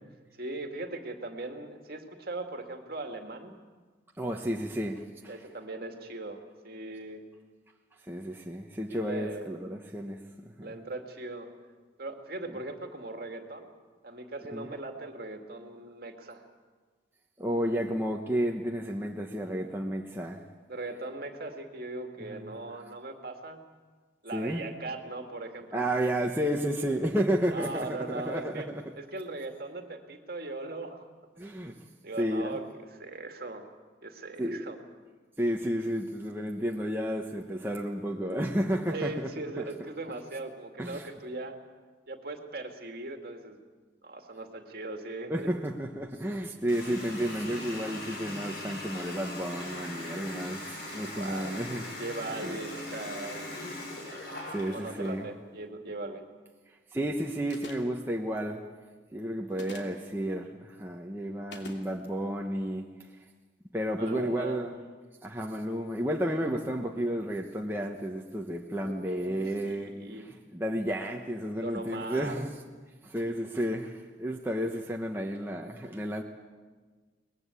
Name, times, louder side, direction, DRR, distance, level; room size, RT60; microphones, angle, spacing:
voice 1, 0.4-3.5 5.3-7.2 8.9-9.5 10.6-11.5 12.0-13.7 14.0-16.4 20.7-23.6 24.2-25.9 27.5-28.7 29.0-31.1 31.4-31.6 32.0-32.6 32.9-33.7 34.0-34.8 38.9-41.6 42.1-43.6 44.0-45.5 51.0-51.6 51.9-53.5 54.7-56.3 64.0-64.6 68.8-70.3 71.6-72.4, right 2 dB, 50° right, 4 dB, 2.2 m, -39 dB
voice 2, 4.2-5.3 8.0-10.2 10.6-10.7 14.5-14.7 17.4-20.4 22.2-22.6 24.3-24.6 25.7-28.8 31.4-31.7 32.2-32.6 34.4-34.6 35.4-39.3 39.6-39.7 40.8-41.1 45.3-51.8 52.4-52.6 54.5-55.2 56.9-58.6 59.1-62.9 63.7-64.8 65.2-72.5 73.0-76.2, equal, 10° right, 0 dB, 1.1 m, -32 dB
Water tap faucet, 46.7-55.2, left 1 dB, 55° left, 6.5 m, -40 dB
sound 1, 57.5-58.0 59.5-60.0 61.5-61.8, left 2 dB, 70° left, 2.8 m, -44 dB
22.5 x 20.5 x 8.4 m, 1.4 s
head